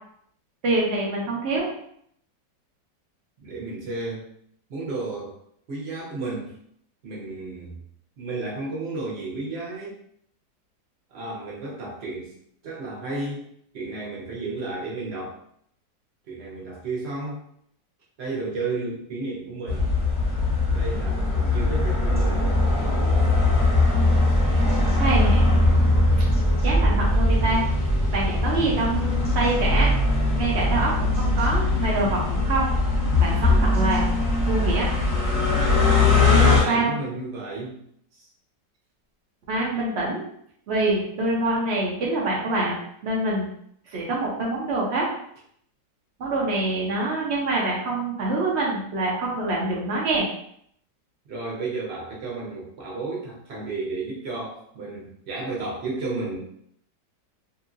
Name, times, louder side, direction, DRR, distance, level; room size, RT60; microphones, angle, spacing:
voice 1, 0.6-1.7 25.0-25.5 26.6-27.6 28.1-29.9 30.3-32.7 33.2-34.1 34.5-34.9 36.3-36.9 39.5-40.2 40.7-42.8 43.0-43.5 43.9-45.1 46.2-50.3, right 2 dB, 85° right, -3 dB, 0.6 m, -25 dB
voice 2, 3.4-4.3 4.7-5.4 5.7-6.5 7.0-7.8 8.2-10.0 11.1-12.3 12.6-13.4 13.7-15.4 16.3-17.4 18.2-19.9 20.7-22.5 24.7-25.2 36.3-37.8 38.1-38.3 51.3-56.4, right 3 dB, 50° right, -4 dB, 0.8 m, -32 dB
sound 1, 19.7-36.6, left 2 dB, 30° left, 0.6 m, -21 dB
2.9 x 2.7 x 2.5 m, 0.69 s
omnidirectional pair, 2.0 m